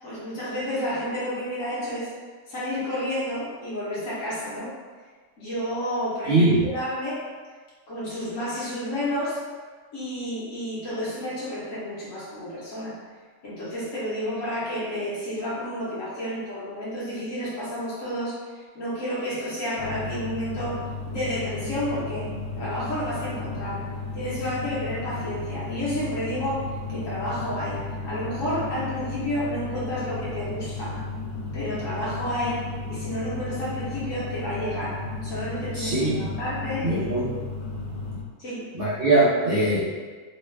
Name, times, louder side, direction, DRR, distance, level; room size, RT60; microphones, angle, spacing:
voice 1, 0.0-2.1 2.5-4.7 5.4-7.2 7.9-9.4 9.9-13.0 13.4-22.3 22.6-23.9 24.1-31.0 31.5-37.1 38.4-38.7, equal, 60° left, -8 dB, 1.2 m, -31 dB
voice 2, 6.3-6.7 35.7-36.3 36.8-37.4 38.7-39.9, right 2 dB, 65° right, -10 dB, 0.5 m, -21 dB
sound 1, 19.8-38.2, left 3 dB, 85° left, 1.2 m, -34 dB
3.1 x 2.2 x 3.2 m, 1.4 s
omnidirectional pair, 1.7 m